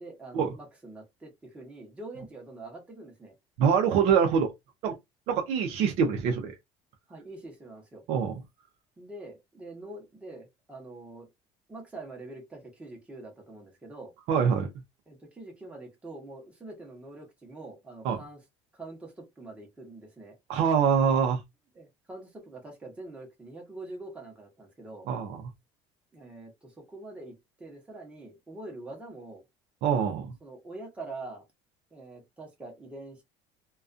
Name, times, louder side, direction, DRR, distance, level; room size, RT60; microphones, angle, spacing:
voice 1, 0.0-3.3 7.1-8.0 9.0-11.3 11.7-14.1 15.1-18.4 18.7-20.4 21.7-25.1 26.1-29.4 30.4-31.4 31.9-33.2, right 2 dB, 10° right, 0.8 m, -44 dB
voice 2, 3.6-4.5 4.8-5.0 5.3-6.5 8.1-8.4 14.3-14.7 18.0-18.2 20.5-21.4 25.1-25.4 29.8-30.3, right 7 dB, 55° right, 0.5 m, -24 dB
2.4 x 2.3 x 2.4 m
cardioid pair, 165°, 12 cm